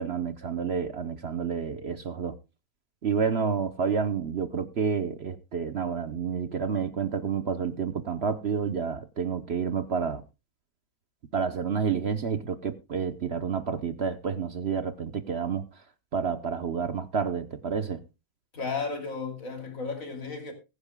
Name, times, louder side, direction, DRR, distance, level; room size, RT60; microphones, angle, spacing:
voice 1, 0.0-2.4 3.0-10.2 11.3-15.7 16.1-18.0, right 6 dB, 55° right, 0.7 m, -29 dB
voice 2, 18.5-20.5, left 4 dB, 45° left, 3.1 m, -34 dB
21.0 x 10.0 x 2.2 m
omnidirectional pair, 2.0 m